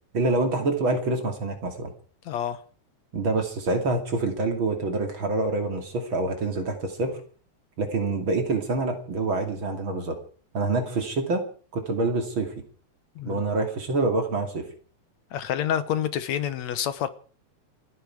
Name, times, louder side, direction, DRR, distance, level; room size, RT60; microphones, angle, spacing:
voice 1, 0.1-1.9 3.1-7.2 7.8-10.2 10.5-11.5 11.7-12.5 13.2-14.7, right 2 dB, 45° right, 3.3 m, -26 dB
voice 2, 2.3-2.6 13.2-13.4 15.3-17.1, left 10 dB, 70° left, 2.3 m, -28 dB
28.0 x 10.0 x 4.8 m
omnidirectional pair, 3.3 m